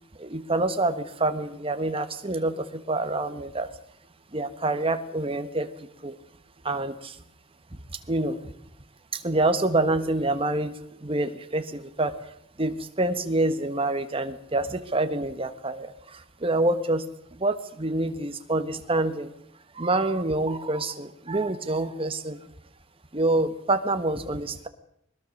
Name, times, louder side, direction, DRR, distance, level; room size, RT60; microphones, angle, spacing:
voice 1, 0.2-3.7 4.3-5.7 6.0-6.1 6.6-7.1 8.1-8.5 9.1-10.7 11.0-12.1 12.6-17.0 17.4-19.3 19.7-22.4 23.1-24.7, right 2 dB, 30° right, 9 dB, 1.4 m, -27 dB
21.5 x 20.5 x 6.6 m, 0.75 s
head